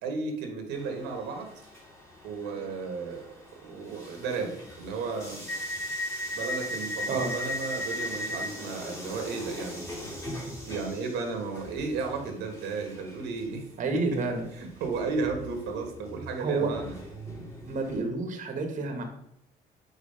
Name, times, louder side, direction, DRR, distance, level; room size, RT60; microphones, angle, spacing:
voice 1, 0.0-1.5 2.2-5.5 6.3-9.8 10.7-13.6 13.9-14.2 14.5-16.9, right 4 dB, 85° right, 4 dB, 1.4 m, -34 dB
sound 1, 0.8-18.0, left 1 dB, 15° left, 2.8 m, -39 dB
voice 2, 13.8-14.4 16.4-16.8 17.7-19.0, right 3 dB, 50° right, 5 dB, 1.3 m, -29 dB
5.2 x 4.6 x 5.5 m, 0.76 s
cardioid pair, 110°, 17 cm